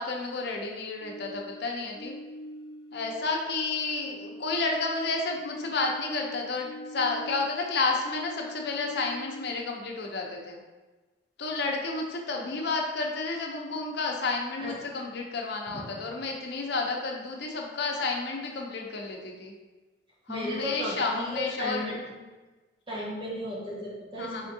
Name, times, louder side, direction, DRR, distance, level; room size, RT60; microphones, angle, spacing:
voice 1, 0.0-2.1 2.9-10.6 11.4-19.5 20.3-21.9 24.2-24.4, left 3 dB, 65° left, 1 dB, 0.6 m, -31 dB
sound 1, 1.0-3.5 3.8-7.7 8.1-9.7, left 1 dB, 25° left, 0.3 m, -43 dB
voice 2, 20.3-22.0 22.9-24.5, equal, 30° right, -5 dB, 1.1 m, -35 dB
4.4 x 3.5 x 2.6 m, 1.2 s
head